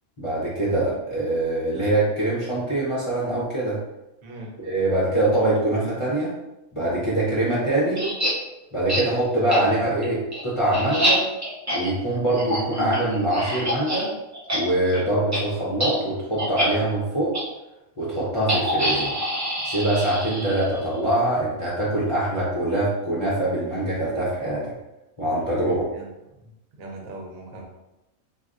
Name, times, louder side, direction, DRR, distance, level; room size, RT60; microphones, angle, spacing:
voice 1, 0.2-3.8 4.6-6.3 6.7-8.0 8.7-11.2 11.7-14.1 14.5-17.3 18.0-19.1 19.6-24.7 25.2-25.9, right 1 dB, 35° left, -8 dB, 0.5 m, -23 dB
voice 2, 4.2-4.5 9.6-9.9 25.9-27.6, right 2 dB, 80° right, 0 dB, 1.1 m, -41 dB
sound 1, 7.9-8.3 8.9-9.0 9.5-9.6 10.0-14.0 14.3-14.6 14.8-15.0 15.3-15.4 15.8-15.9 16.4-16.7 17.3-17.4 18.5-20.8, equal, 30° right, 0.3 m, -26 dB
3.4 x 2.6 x 2.4 m, 0.95 s
omnidirectional pair, 1.4 m